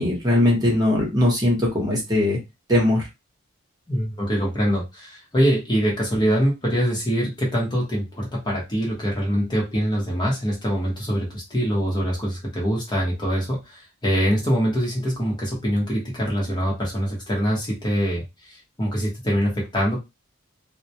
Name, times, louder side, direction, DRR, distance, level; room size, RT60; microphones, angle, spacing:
voice 1, 0.0-2.4 2.7-3.0, left 1 dB, 20° right, -3 dB, 0.9 m, -20 dB
voice 2, 3.9-20.0, equal, 20° left, -3 dB, 0.8 m, -24 dB
2.2 x 2.1 x 2.7 m, 0.23 s
head